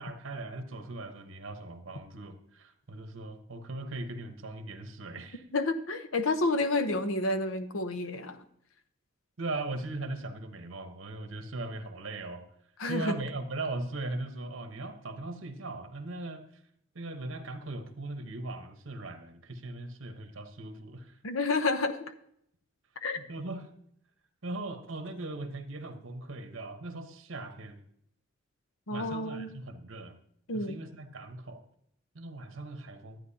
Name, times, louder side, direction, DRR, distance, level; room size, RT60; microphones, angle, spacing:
voice 1, 0.0-5.4 9.4-12.4 12.9-16.4 16.9-21.1 23.2-23.7 24.4-27.8 28.9-30.2 30.5-31.6 32.1-33.2, right 2 dB, 80° right, 7 dB, 1.1 m, -39 dB
voice 2, 5.5-8.4 12.8-13.2 21.2-22.1 23.0-23.2 28.9-29.5 30.5-30.7, left 2 dB, 85° left, 9 dB, 0.9 m, -30 dB
12.0 x 9.1 x 2.8 m, 0.71 s
head